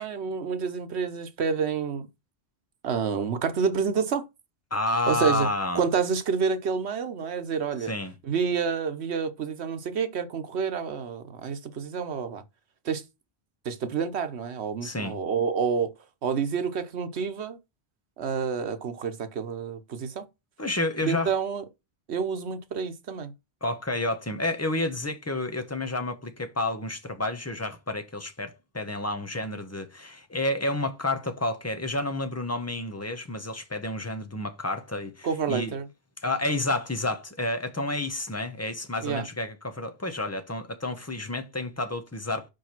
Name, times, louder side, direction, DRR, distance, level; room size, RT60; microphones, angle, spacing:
voice 1, 0.0-2.1 2.8-4.3 5.1-5.5 5.7-7.9 8.2-12.4 12.8-13.0 13.6-15.9 16.2-17.6 18.2-20.2 21.0-21.6 22.1-23.3 35.2-35.9 39.0-39.3, right 6 dB, 90° right, 1.2 m, -28 dB
voice 2, 4.7-5.8 7.9-8.1 14.8-15.2 20.6-21.3 23.6-35.7 36.2-42.5, left 2 dB, 15° left, 1.0 m, -30 dB
5.1 x 5.0 x 5.9 m
omnidirectional pair, 1.1 m